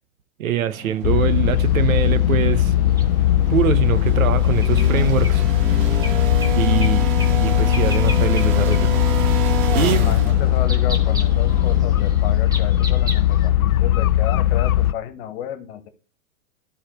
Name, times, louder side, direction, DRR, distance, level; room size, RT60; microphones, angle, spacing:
voice 1, 0.4-2.7 3.5-5.4 6.5-7.2 7.4-8.9 9.7-10.1, right 9 dB, 75° right, 1.1 m, -23 dB
sound 1, 0.7-12.5, right 8 dB, 40° right, 1.6 m, -30 dB
sound 2, 1.0-14.9, left 13 dB, 90° left, 0.6 m, -18 dB
sound 3, 3.0-3.1 4.4-6.9 7.2-7.4 7.7-8.5 8.7-8.8 9.5-9.7 10.6-13.5, equal, 10° right, 1.5 m, -34 dB
voice 2, 9.7-15.9, left 10 dB, 50° left, 1.7 m, -32 dB
11.5 x 4.2 x 6.4 m
hypercardioid pair, 120°, 41 cm